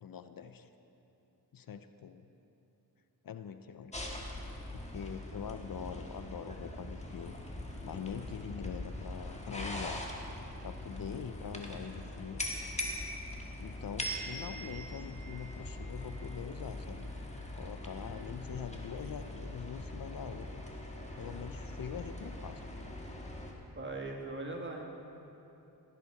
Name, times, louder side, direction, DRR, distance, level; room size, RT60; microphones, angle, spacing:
voice 1, 0.0-0.7 1.5-2.3 3.2-4.0 4.7-7.3 7.8-10.0 10.6-12.4 13.6-17.1 17.6-20.6 21.2-22.6, left 7 dB, 60° left, 10 dB, 0.6 m, -43 dB
sound 1, 3.9-23.5, left 1 dB, 15° left, 1.6 m, -42 dB
voice 2, 23.8-24.8, right 2 dB, 30° right, 0 dB, 1.8 m, -39 dB
16.5 x 10.0 x 4.8 m, 2.9 s
cardioid pair, 75°, 40 cm